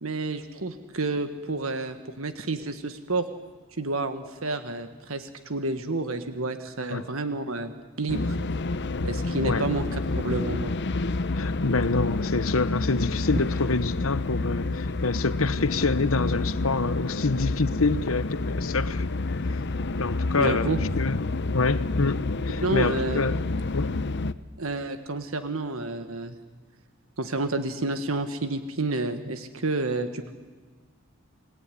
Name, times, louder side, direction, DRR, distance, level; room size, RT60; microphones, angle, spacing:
voice 1, 0.0-3.3 3.7-8.4 9.0-10.7 20.4-20.8 22.6-23.2 24.6-26.4 27.2-30.3, right 2 dB, 75° right, 9 dB, 1.6 m, -30 dB
sound 1, 8.1-24.3, left 3 dB, 55° left, 0.9 m, -29 dB
voice 2, 11.4-19.1 20.0-21.2 21.5-23.5 23.7-23.9, left 3 dB, 75° left, 14 dB, 1.1 m, -27 dB
29.0 x 20.0 x 9.9 m, 1.4 s
head